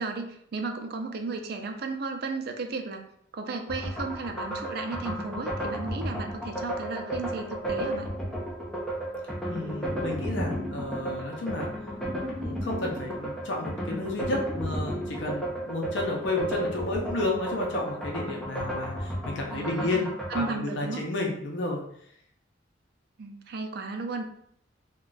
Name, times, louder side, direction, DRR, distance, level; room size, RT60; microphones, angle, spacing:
voice 1, 0.0-3.0 3.3-8.1 19.5-21.0 23.2-24.2, right 3 dB, 55° right, 5 dB, 0.4 m, -34 dB
sound 1, 3.7-20.6, equal, ahead, 0.6 m, -33 dB
voice 2, 9.5-11.7 12.4-21.8, left 2 dB, 70° left, -1 dB, 0.6 m, -31 dB
2.4 x 2.3 x 3.9 m, 0.69 s
head